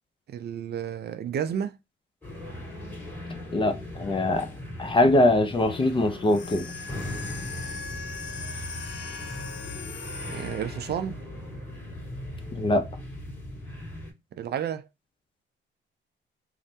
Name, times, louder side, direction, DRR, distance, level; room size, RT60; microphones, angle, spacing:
voice 1, 0.3-1.7 10.2-11.2 14.3-14.9, right 8 dB, 55° right, 0.4 m, -31 dB
sound 1, 2.2-14.1, left 1 dB, 10° left, 1.9 m, -39 dB
voice 2, 3.5-4.5 4.8-6.7 12.5-12.8, left 1 dB, 25° left, 0.6 m, -22 dB
sound 2, 6.2-11.0, left 5 dB, 65° left, 0.6 m, -39 dB
3.2 x 2.0 x 2.7 m
cardioid pair, 90°, 20 cm